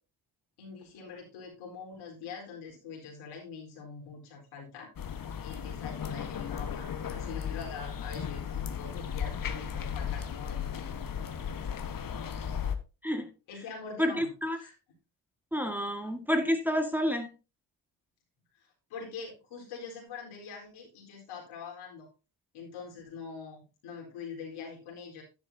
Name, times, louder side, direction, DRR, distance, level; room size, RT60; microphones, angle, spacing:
voice 1, 0.6-4.9 5.4-11.0 13.5-14.3 14.6-14.7 18.5-22.1 22.5-25.2, left 5 dB, 75° left, 4.2 m, -44 dB
sound 1, 5.0-12.8, left 8 dB, 40° left, 1.4 m, -36 dB
voice 2, 14.0-14.6 15.5-17.3, equal, 5° right, 1.7 m, -29 dB
11.0 x 9.9 x 2.7 m
hypercardioid pair, 55°, 50 cm